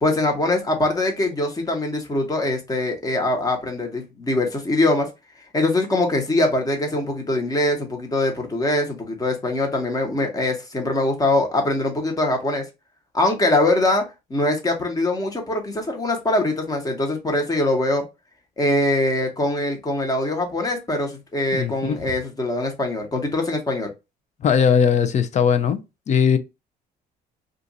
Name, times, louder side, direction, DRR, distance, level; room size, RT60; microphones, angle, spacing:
voice 1, 0.0-5.1 5.5-12.6 13.1-14.0 14.3-18.0 18.6-23.9, left 2 dB, 20° left, 1.1 m, -22 dB
voice 2, 21.5-22.1 24.4-25.8 26.1-26.4, left 7 dB, 45° left, 0.6 m, -19 dB
2.5 x 2.5 x 4.0 m
cardioid pair, 110°, 17 cm